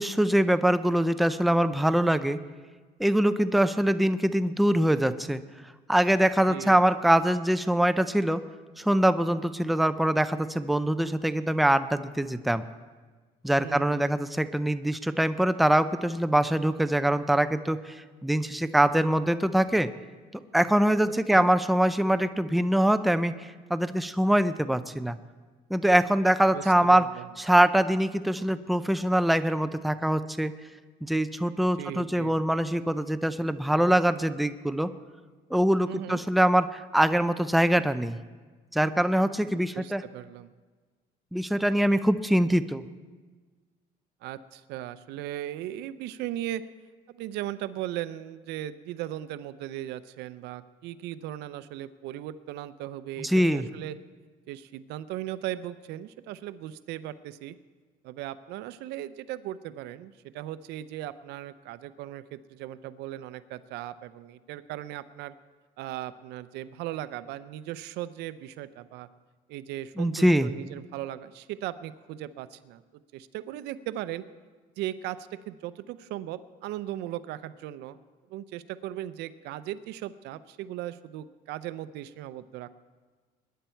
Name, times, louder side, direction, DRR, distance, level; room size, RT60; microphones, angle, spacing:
voice 1, 0.0-2.4 3.0-5.4 5.9-8.4 8.8-12.6 13.4-18.0 18.2-19.9 20.5-25.2 25.7-27.1 27.4-30.5 31.0-34.9 35.5-38.2 38.7-40.0 41.3-42.8 53.2-53.7 70.0-70.5, right 1 dB, ahead, 11 dB, 0.5 m, -23 dB
voice 2, 13.6-14.0 21.3-21.5 26.5-27.3 31.8-32.4 35.9-36.2 39.4-40.5 44.2-46.6 47.1-54.0 54.5-57.6 58.0-65.3 65.8-69.1 69.5-72.8 73.1-74.2 74.8-78.0 78.3-82.7, right 13 dB, 90° right, 14 dB, 0.6 m, -37 dB
21.5 x 10.5 x 4.5 m, 1.4 s
cardioid pair, 110°, 17 cm